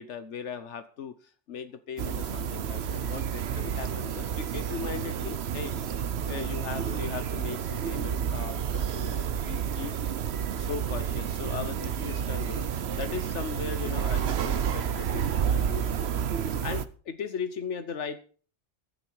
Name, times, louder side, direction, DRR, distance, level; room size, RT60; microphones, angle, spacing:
voice 1, 0.0-5.7 6.3-10.0 10.5-16.1 16.6-18.2, left 7 dB, 80° left, 11 dB, 1.2 m, -38 dB
sound 1, 2.0-16.8, right 8 dB, 65° right, 1.1 m, -30 dB
15.5 x 11.5 x 4.7 m, 0.41 s
omnidirectional pair, 1.2 m